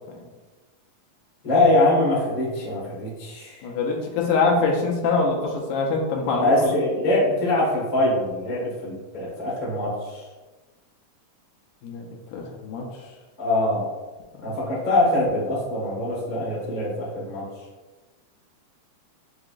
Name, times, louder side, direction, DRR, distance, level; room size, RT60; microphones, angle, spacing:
voice 1, 1.4-3.7 6.4-10.3 13.4-13.9 14.4-17.6, left 2 dB, 55° left, -7 dB, 0.5 m, -23 dB
voice 2, 3.6-6.7 11.8-12.1 12.3-12.8, left 4 dB, 80° left, -1 dB, 2.1 m, -24 dB
6.4 x 2.9 x 2.4 m, 1.2 s
omnidirectional pair, 3.7 m